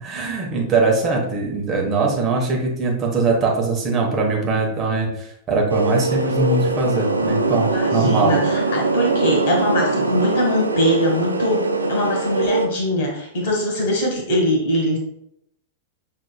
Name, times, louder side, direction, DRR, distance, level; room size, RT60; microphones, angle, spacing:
voice 1, 0.0-8.4, right 3 dB, 30° right, -1 dB, 1.2 m, -21 dB
sound 1, 5.7-12.7, right 2 dB, 80° right, 0.5 m, -22 dB
voice 2, 7.7-15.0, equal, 50° left, 0 dB, 1.7 m, -22 dB
6.3 x 3.7 x 2.3 m, 0.75 s
figure-of-eight pair, 95°, 0 cm